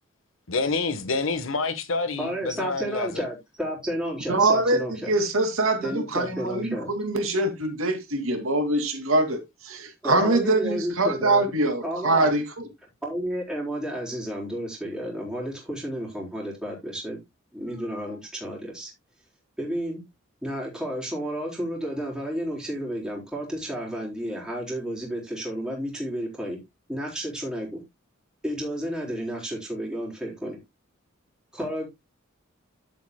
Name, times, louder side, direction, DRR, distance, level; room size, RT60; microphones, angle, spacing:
voice 1, 0.5-3.2, left 3 dB, 70° left, 1.3 m, -27 dB
voice 2, 2.2-5.1 5.8-6.9 10.0-11.5 11.8-12.3 13.0-17.2 17.5-18.9 19.6-20.0 20.4-26.6 26.9-27.8 28.4-30.6 31.5-31.9, equal, 5° right, 4.1 m, -32 dB
voice 3, 4.3-4.8 5.1-9.4 9.6-12.7, right 2 dB, 80° right, 2.4 m, -23 dB
10.5 x 8.2 x 2.2 m
head